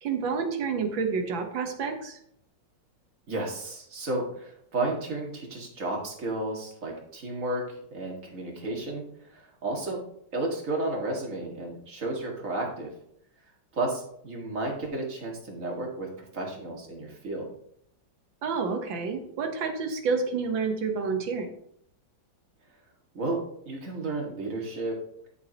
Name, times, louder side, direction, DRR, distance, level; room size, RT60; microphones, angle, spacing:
voice 1, 0.0-2.2 18.4-21.5, right 5 dB, 85° right, 4 dB, 2.0 m, -29 dB
voice 2, 3.3-9.0 9.3-10.0 10.3-12.9 13.7-17.5 23.1-24.9, right 2 dB, 45° right, -1 dB, 2.3 m, -32 dB
11.0 x 7.1 x 3.0 m, 0.70 s
omnidirectional pair, 2.0 m